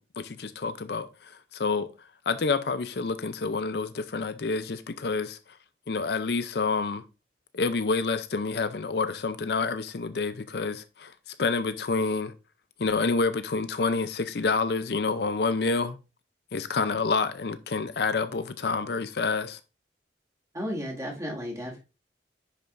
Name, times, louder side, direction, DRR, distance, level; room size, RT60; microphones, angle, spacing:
voice 1, 0.0-1.9 2.3-5.4 5.9-7.0 7.5-11.1 11.4-12.3 12.8-16.0 16.5-19.6, left 4 dB, 60° left, 0.5 m, -28 dB
voice 2, 20.5-21.8, equal, 20° right, 2.1 m, -33 dB
10.0 x 5.3 x 2.5 m
head